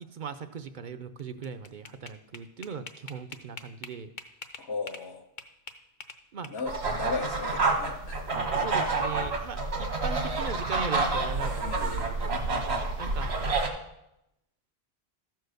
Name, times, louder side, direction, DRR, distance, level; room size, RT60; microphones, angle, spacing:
voice 1, 0.0-4.1 6.3-6.5 8.5-11.5 11.8-12.1 13.0-13.4, right 6 dB, 55° right, 10 dB, 0.6 m, -39 dB
sound 1, 1.2-5.1 5.4-6.9, left 4 dB, 50° left, 0.9 m, -44 dB
voice 2, 4.6-5.2 6.5-8.2 11.6-12.1, left 4 dB, 80° left, 4 dB, 1.5 m, -36 dB
sound 2, 6.7-13.7, right 3 dB, 80° right, 1.7 m, -28 dB
13.5 x 4.6 x 6.4 m, 0.85 s
omnidirectional pair, 1.1 m